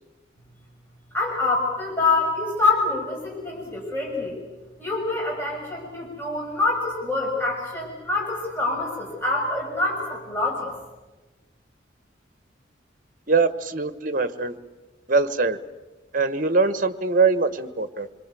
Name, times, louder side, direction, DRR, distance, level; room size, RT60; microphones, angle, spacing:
voice 1, 1.1-4.4 4.8-10.7, left 3 dB, 10° left, -3 dB, 6.4 m, -25 dB
voice 2, 13.3-14.6 15.1-15.6 16.1-18.1, right 4 dB, 45° right, 12 dB, 1.2 m, -22 dB
26.5 x 23.5 x 8.4 m, 1.2 s
head